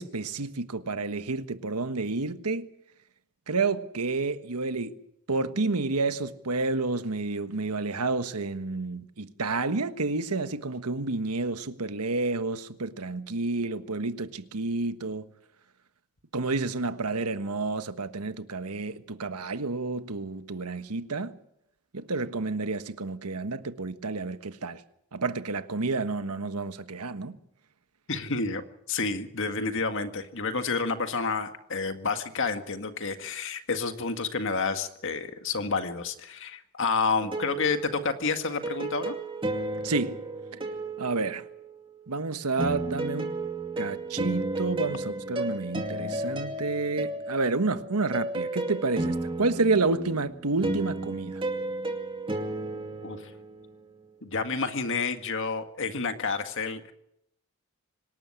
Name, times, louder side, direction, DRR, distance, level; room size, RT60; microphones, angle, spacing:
voice 1, 0.0-2.7 3.5-5.0 5.3-15.3 16.3-21.4 21.9-24.8 25.1-27.4 39.8-40.2 40.5-40.6 41.0-41.4 42.1-43.3 43.8-51.4, right 3 dB, 90° right, 1.4 m, -30 dB
voice 2, 28.1-39.1 53.0-53.2 54.2-56.9, left 4 dB, 55° left, 1.9 m, -29 dB
sound 1, 37.2-41.9 42.6-53.8, right 2 dB, 25° right, 2.4 m, -33 dB
25.5 x 12.5 x 9.9 m
head